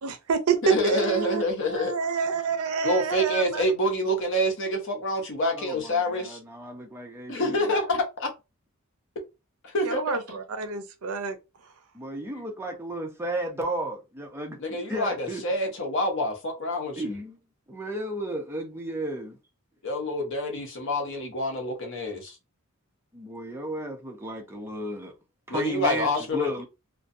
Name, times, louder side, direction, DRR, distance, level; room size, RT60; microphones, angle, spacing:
voice 1, 0.0-1.4 1.7-3.6 9.8-11.4, right 5 dB, 80° right, 0.5 m, -28 dB
voice 2, 0.6-1.9 2.8-6.4 7.3-8.3 9.6-10.2 12.3-12.5 14.6-17.1 19.8-22.4 25.5-26.7, left 1 dB, 60° left, 0.8 m, -27 dB
voice 3, 5.5-7.6 11.9-15.4 17.0-17.4 17.7-19.4 23.1-25.1 25.5-26.7, right 1 dB, 10° right, 0.6 m, -34 dB
2.6 x 2.2 x 2.5 m
head